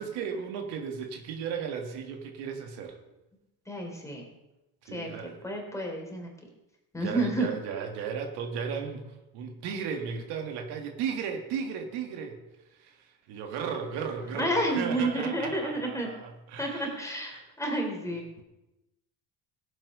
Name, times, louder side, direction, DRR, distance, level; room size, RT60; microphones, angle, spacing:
voice 1, 0.0-3.0 4.8-5.4 7.0-9.1 9.3-12.4 12.8-13.0 13.3-17.0 17.3-17.4, right 6 dB, 90° right, 4 dB, 2.0 m, -35 dB
voice 2, 3.7-4.3 4.8-5.2 5.4-6.3 6.9-7.5 14.3-16.1 16.6-18.2, right 1 dB, 10° left, 1 dB, 3.4 m, -30 dB
16.0 x 7.8 x 5.4 m, 0.97 s
cardioid pair, 120°, 40 cm